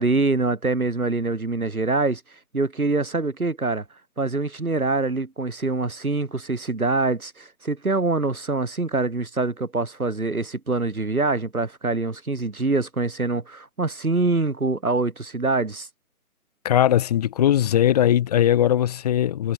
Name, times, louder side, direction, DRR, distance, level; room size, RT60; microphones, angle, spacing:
voice 1, 0.0-2.2 2.5-3.8 4.2-15.9, right 3 dB, 75° right, 3.6 m, -24 dB
voice 2, 16.6-19.5, left 11 dB, 25° left, 3.2 m, -19 dB
figure-of-eight pair, 145°, 44 cm